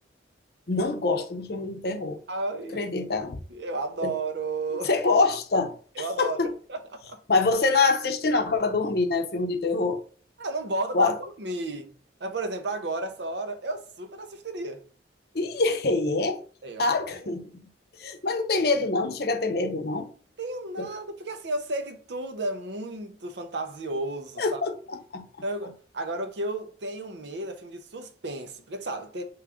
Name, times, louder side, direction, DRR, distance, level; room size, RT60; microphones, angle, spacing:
voice 1, 0.7-2.2 2.7-3.4 4.0-4.1 4.8-6.5 7.3-10.0 10.9-11.1 15.3-16.4 16.8-17.4 18.0-20.1 20.8-20.9 24.4-24.7 25.1-25.2, left 3 dB, 55° left, 0.6 m, -25 dB
voice 2, 2.3-2.9 3.5-4.9 6.0-7.2 10.4-11.9 12.2-14.8 16.6-16.8 20.4-24.6 25.4-29.2, right 2 dB, 70° right, 0.7 m, -33 dB
3.6 x 3.1 x 4.8 m
head